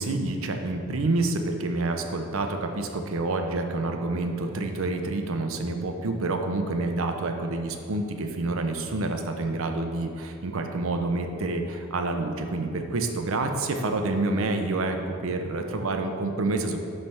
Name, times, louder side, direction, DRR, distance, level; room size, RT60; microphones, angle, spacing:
voice 1, 0.0-16.8, right 2 dB, 65° right, 5 dB, 0.6 m, -28 dB
7.5 x 3.3 x 5.6 m, 2.6 s
head